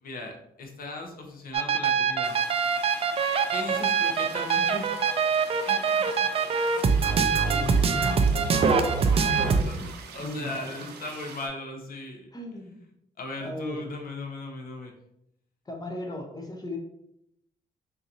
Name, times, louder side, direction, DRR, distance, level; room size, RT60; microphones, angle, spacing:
voice 1, 0.0-2.4 3.5-4.9 5.7-6.3 6.7-7.0 7.4-7.5 9.1-9.3 9.7-9.8 10.1-12.7 13.2-14.9, left 2 dB, 60° left, 2 dB, 0.8 m, -38 dB
sound 1, 1.5-9.6, right 5 dB, 35° right, 0.4 m, -24 dB
sound 2, 2.2-11.5, right 6 dB, 85° right, 0.5 m, -44 dB
voice 2, 7.4-8.2 9.2-9.9 10.2-10.9 12.3-12.8 13.4-13.9 15.7-16.8, left 1 dB, 25° left, 2 dB, 0.6 m, -36 dB
3.8 x 2.6 x 2.8 m, 0.79 s
cardioid pair, 85°, 17 cm